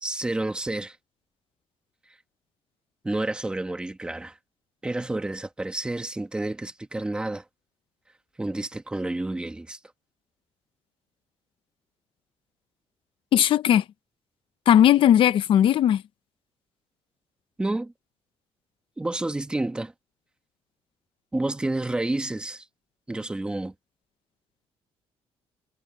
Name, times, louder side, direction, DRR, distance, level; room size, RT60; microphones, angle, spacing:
voice 1, 0.0-1.0 3.0-4.4 4.8-7.4 8.4-9.8 17.6-17.9 19.0-19.9 21.3-22.6 23.1-23.7, right 2 dB, 10° right, 1.8 m, -29 dB
voice 2, 13.3-13.8 14.7-16.0, left 10 dB, 50° left, 0.8 m, -18 dB
cardioid pair, 170°, 11 cm